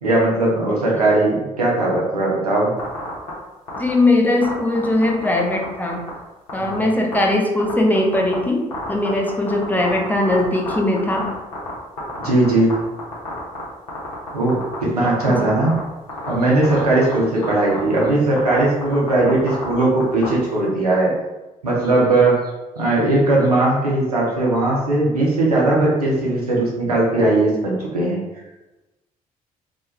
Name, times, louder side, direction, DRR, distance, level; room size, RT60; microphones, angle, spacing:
voice 1, 0.0-2.7 6.6-6.9 12.2-12.8 14.3-15.7 16.3-21.1 21.6-22.5 22.8-28.2, right 2 dB, 90° right, -4 dB, 0.5 m, -18 dB
sound 1, 2.8-3.3 3.7-3.9 4.4-5.6 5.9-6.1 6.5-6.7 7.1-7.2 7.6-8.3 8.7-11.7 12.0-12.7 13.0-13.6 13.9-14.8 15.2-15.8 16.1-16.3 16.6-17.1 17.4-17.5 17.7-18.0 18.4-18.6 18.8-20.3, left 3 dB, 75° left, 0.7 m, -30 dB
voice 2, 3.8-6.1 6.5-11.3 15.3-15.6, left 2 dB, 10° left, 0 dB, 0.5 m, -20 dB
2.2 x 2.2 x 2.9 m, 1.1 s
figure-of-eight pair, 45°, 19 cm